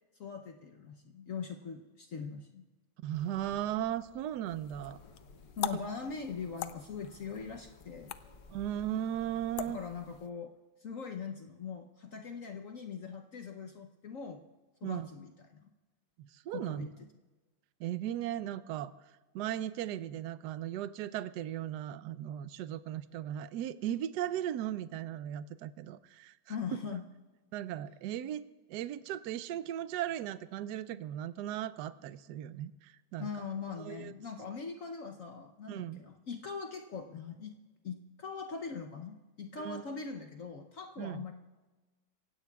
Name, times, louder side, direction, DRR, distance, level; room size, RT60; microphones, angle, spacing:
voice 1, 0.2-2.7 5.6-8.1 9.7-10.5 10.8-14.5 14.8-15.7 16.5-17.1 26.5-27.1 33.2-37.6 37.8-41.3, left 5 dB, 55° left, 5 dB, 0.9 m, -41 dB
voice 2, 3.0-5.0 5.7-5.8 8.5-9.8 14.8-15.1 16.2-16.9 17.8-18.9 19.3-26.6 27.5-28.4 28.7-33.3 33.8-34.1 35.7-36.0 39.5-39.8 41.0-41.2, right 11 dB, 70° right, 14 dB, 1.1 m, -37 dB
sound 1, 3.1-9.9, left 1 dB, 25° left, 2.0 m, -58 dB
sound 2, 4.5-10.3, left 12 dB, 80° left, 1.4 m, -44 dB
27.0 x 16.0 x 2.4 m, 1.2 s
omnidirectional pair, 2.1 m